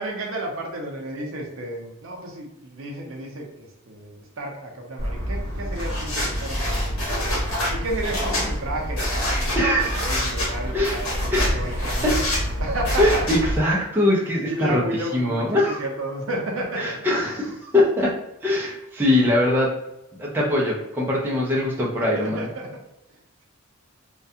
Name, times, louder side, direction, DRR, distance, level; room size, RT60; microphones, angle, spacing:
voice 1, 0.0-7.1 7.7-12.2 12.6-13.2 13.8-13.9 14.5-16.8 22.1-22.7, right 1 dB, 65° right, 0 dB, 0.5 m, -32 dB
sound 1, 5.0-13.6, equal, 75° left, 0.9 m, -26 dB
voice 2, 9.6-10.1 10.7-11.0 11.3-11.8 12.0-12.1 13.0-15.8 16.8-18.1 18.4-19.7 20.2-22.5, left 1 dB, 10° right, -5 dB, 0.4 m, -22 dB
2.3 x 2.2 x 2.7 m, 0.88 s
head